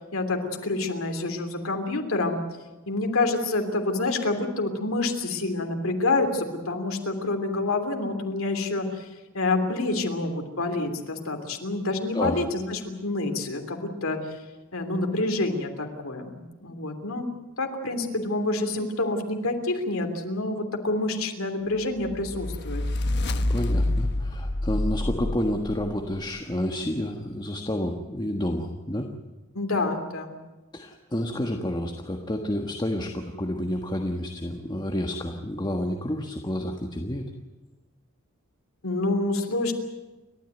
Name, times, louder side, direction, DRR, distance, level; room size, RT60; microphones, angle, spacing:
voice 1, 0.1-2.4 2.9-9.1 9.3-14.4 14.7-17.3 17.6-22.8 29.5-30.4 38.8-39.7, left 2 dB, 75° left, 5 dB, 3.1 m, -27 dB
sound 1, 22.0-26.2, left 1 dB, 55° left, 1.2 m, -27 dB
voice 2, 23.5-29.1 30.7-37.3, left 1 dB, 20° left, 3 dB, 1.5 m, -29 dB
29.5 x 13.5 x 9.3 m, 1.2 s
head